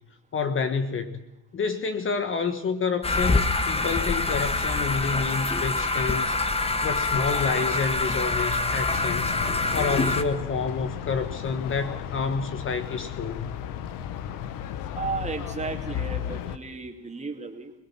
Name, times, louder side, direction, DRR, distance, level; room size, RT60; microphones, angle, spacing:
voice 1, 0.3-1.2 1.5-6.3 6.8-9.3 9.7-13.5, left 5 dB, 35° left, 9 dB, 1.4 m, -28 dB
sound 1, 3.0-10.2, left 3 dB, 15° left, 1.5 m, -25 dB
sound 2, 5.4-10.6, left 7 dB, 80° left, 2.7 m, -45 dB
sound 3, 8.9-16.6, left 9 dB, 65° left, 1.3 m, -34 dB
voice 2, 14.9-17.7, right 4 dB, 20° right, 4 dB, 2.7 m, -34 dB
24.5 x 18.5 x 6.1 m, 0.94 s
supercardioid pair, 100°, 36 cm